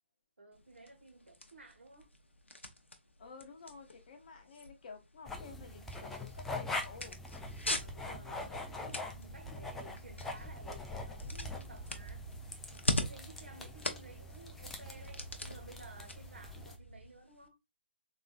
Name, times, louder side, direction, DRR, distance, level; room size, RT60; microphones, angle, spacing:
voice 1, 0.4-2.1 7.7-12.3 13.0-17.6, right 3 dB, 70° right, 1.4 m, -55 dB
sound 1, 0.5-17.5, left 2 dB, 80° left, 0.7 m, -43 dB
voice 2, 3.2-7.2, left 4 dB, 40° left, 0.9 m, -52 dB
sound 2, 5.2-16.8, left 2 dB, 5° left, 0.3 m, -44 dB
sound 3, 7.4-17.1, right 2 dB, 55° right, 0.8 m, -54 dB
4.1 x 3.3 x 2.3 m
figure-of-eight pair, 135°, 6 cm